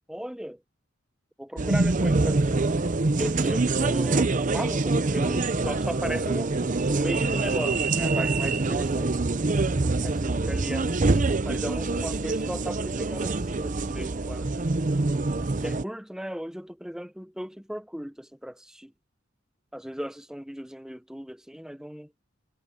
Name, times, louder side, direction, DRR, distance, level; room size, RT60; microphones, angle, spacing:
voice 1, 0.1-0.6 1.4-2.6 3.2-6.6 6.9-9.4 10.0-14.7 15.6-18.9 19.7-22.1, equal, 5° right, 0.7 m, -36 dB
sound 1, 1.6-15.8, right 3 dB, 40° right, 0.7 m, -25 dB
head